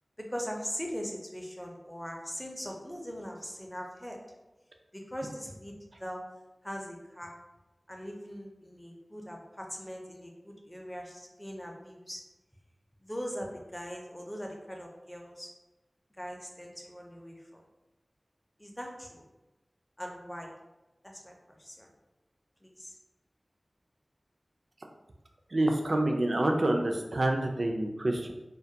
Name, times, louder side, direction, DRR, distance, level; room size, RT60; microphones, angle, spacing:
voice 1, 0.2-4.2 4.9-6.2 6.6-7.4 7.9-12.2 13.0-15.5 16.2-17.6 18.6-19.3 20.0-20.5 21.0-21.9 22.6-22.9, equal, 10° left, 1 dB, 0.5 m, -41 dB
voice 2, 25.5-28.3, right 1 dB, 70° right, 3 dB, 0.3 m, -27 dB
2.2 x 2.1 x 2.6 m, 1.0 s
wide cardioid pair, 50°, 0 cm